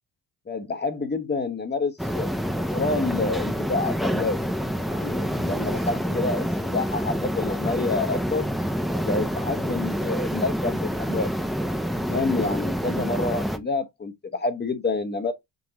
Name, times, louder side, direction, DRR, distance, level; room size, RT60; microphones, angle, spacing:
voice 1, 0.5-2.3 2.7-4.4 4.9-8.4 8.9-11.3 12.0-15.3, left 3 dB, 25° left, 0.9 m, -28 dB
sound 1, 2.0-13.6, equal, ahead, 0.6 m, -27 dB
3.9 x 3.7 x 2.8 m
supercardioid pair, 70°, 40 cm